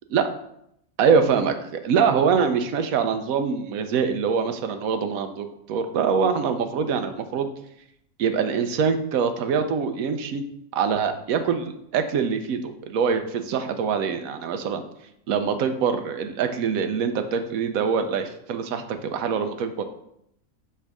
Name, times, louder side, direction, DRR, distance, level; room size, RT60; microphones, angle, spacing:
voice 1, 1.0-7.5 8.2-10.4 10.7-14.8 15.3-19.8, right 6 dB, 75° right, 7 dB, 1.1 m, -24 dB
6.2 x 3.3 x 6.0 m, 0.75 s
omnidirectional pair, 1.5 m